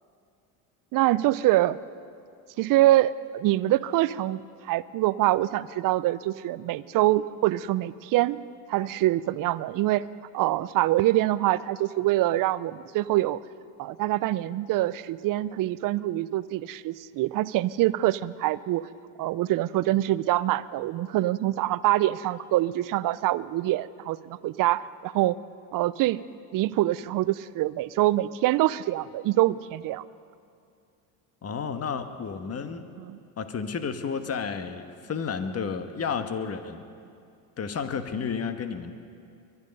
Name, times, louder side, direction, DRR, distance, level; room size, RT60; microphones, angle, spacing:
voice 1, 0.9-1.8 2.6-8.4 8.7-10.0 10.3-13.4 13.8-18.9 19.2-25.4 25.7-26.2 26.5-30.0 33.0-33.2, right 15 dB, 45° right, 18 dB, 0.6 m, -25 dB
voice 2, 31.4-32.9 33.4-36.8 37.6-38.9, left 6 dB, 30° left, 8 dB, 1.4 m, -31 dB
23.0 x 11.0 x 5.4 m, 2.4 s
hypercardioid pair, 80°, 46 cm